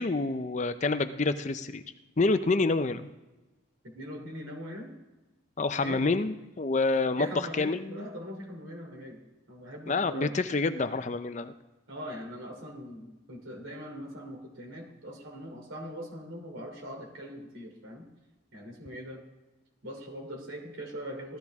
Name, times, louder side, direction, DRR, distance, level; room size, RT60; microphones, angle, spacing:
voice 1, 0.0-1.8 2.2-3.1 5.6-8.1 9.9-11.5, left 3 dB, 35° left, 11 dB, 0.5 m, -28 dB
voice 2, 3.8-4.9 5.8-6.0 7.2-9.2 9.5-10.3 11.9-18.1 18.5-19.2 19.8-21.4, equal, 80° right, 2 dB, 3.0 m, -41 dB
15.5 x 12.5 x 3.5 m, 1.1 s
head